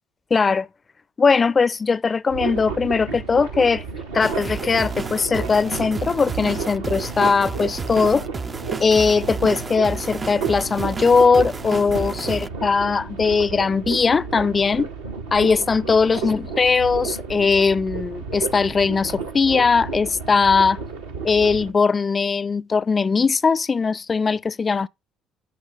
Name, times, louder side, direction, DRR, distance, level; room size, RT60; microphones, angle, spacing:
voice 1, 0.3-0.7 1.2-3.8 4.1-8.3 8.8-14.9 15.3-20.8 21.2-24.9, left 5 dB, 30° left, 0.5 m, -20 dB
sound 1, 2.3-21.7, right 5 dB, 80° right, 1.4 m, -32 dB
sound 2, 4.2-12.5, right 4 dB, 25° right, 0.4 m, -32 dB
13.5 x 6.0 x 3.4 m
figure-of-eight pair, 50°, 0 cm